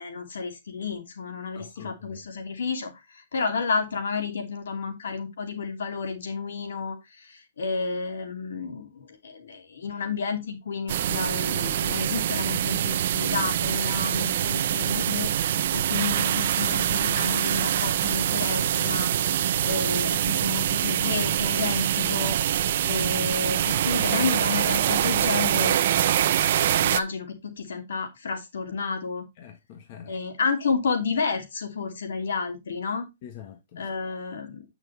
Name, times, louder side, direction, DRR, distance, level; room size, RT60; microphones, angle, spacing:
voice 1, 0.0-19.1 19.6-22.4 22.8-25.8 26.8-29.3 30.1-33.1 33.8-34.6, left 5 dB, 80° left, 2.8 m, -31 dB
voice 2, 1.5-2.3 29.4-30.1 33.2-33.9, left 9 dB, 35° left, 1.3 m, -45 dB
sound 1, 10.9-27.0, right 11 dB, 50° right, 0.6 m, -24 dB
8.9 x 6.3 x 3.3 m
hypercardioid pair, 165°, 0 cm